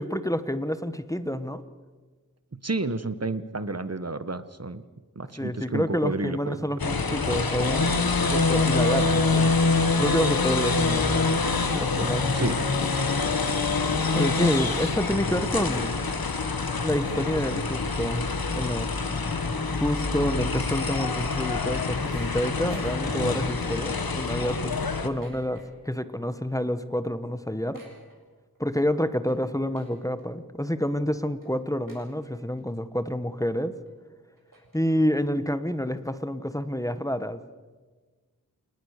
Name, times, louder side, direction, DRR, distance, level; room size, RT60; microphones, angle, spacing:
voice 1, 0.0-1.6 5.4-7.9 8.3-9.6 10.0-11.5 11.7-12.5 14.1-16.0 16.8-18.2 18.5-18.9 19.8-24.8 25.0-27.8 28.6-33.7 34.7-37.4, equal, 10° left, 11 dB, 1.3 m, -28 dB
voice 2, 2.5-4.8 5.1-6.7 12.3-12.6, right 3 dB, 45° right, 13 dB, 1.3 m, -31 dB
sound 1, 6.8-25.1, left 3 dB, 90° left, 1.6 m, -26 dB
sound 2, 21.7-23.5 23.9-24.0 24.3-26.0 26.2-26.6 26.9-27.0 27.2-28.6 29.1-29.3 29.7-30.2 30.7-30.8 31.4-31.5 31.9-32.6 33.0-33.1 33.9-34.0 34.3-35.2, right 1 dB, 65° right, 7.6 m, -51 dB
28.5 x 19.0 x 6.7 m, 1.4 s
wide cardioid pair, 50°, 35 cm